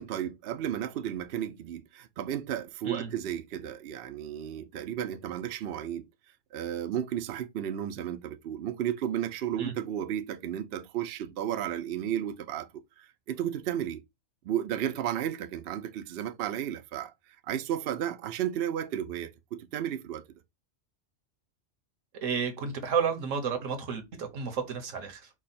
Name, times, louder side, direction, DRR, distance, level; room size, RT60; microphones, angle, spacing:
voice 1, 0.0-6.0 6.5-12.7 13.0-14.0 14.4-17.1 17.5-20.2, right 10 dB, 60° right, 0.7 m, -33 dB
voice 2, 22.2-25.3, right 6 dB, 85° right, 1.4 m, -31 dB
4.8 x 2.3 x 4.1 m
omnidirectional pair, 1.3 m